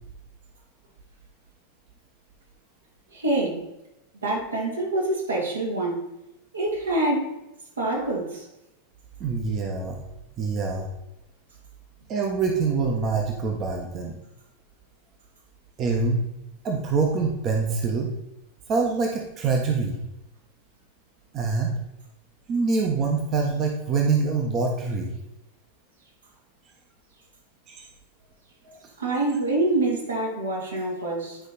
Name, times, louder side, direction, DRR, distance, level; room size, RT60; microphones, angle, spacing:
voice 1, 3.1-3.6 4.1-6.1 6.5-7.4 7.8-8.4 29.0-31.4, right 2 dB, 75° right, -2 dB, 2.6 m, -26 dB
voice 2, 9.2-10.0 10.4-10.9 12.1-14.2 15.8-16.2 16.6-18.1 18.7-20.0 21.3-21.7 22.5-25.1 27.7-27.9 28.7-28.8, right 4 dB, 30° right, 1 dB, 1.3 m, -25 dB
10.5 x 5.2 x 4.1 m, 0.91 s
figure-of-eight pair, 90°, 0 cm